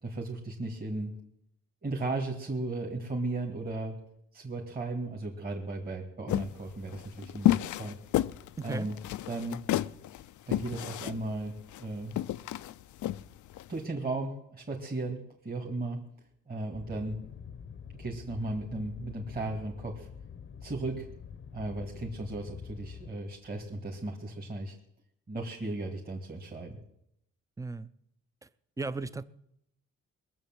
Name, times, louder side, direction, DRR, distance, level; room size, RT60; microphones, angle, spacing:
voice 1, 0.0-1.1 1.8-4.0 4.3-8.0 8.6-8.9 9.3-9.6 10.5-12.1 13.7-16.0 16.5-17.3 18.0-20.1 20.6-21.1 21.5-24.8 25.3-26.8, right 2 dB, 30° right, 0 dB, 2.1 m, -36 dB
sound 1, 6.3-13.7, left 14 dB, 85° left, 0.5 m, -31 dB
voice 2, 8.6-8.9 27.6-27.9 28.4-28.5 28.8-29.2, right 3 dB, 10° right, 15 dB, 0.5 m, -35 dB
sound 2, 16.7-24.1, left 7 dB, 40° left, 0.8 m, -46 dB
21.0 x 7.1 x 7.5 m, 0.76 s
cardioid pair, 110°, 29 cm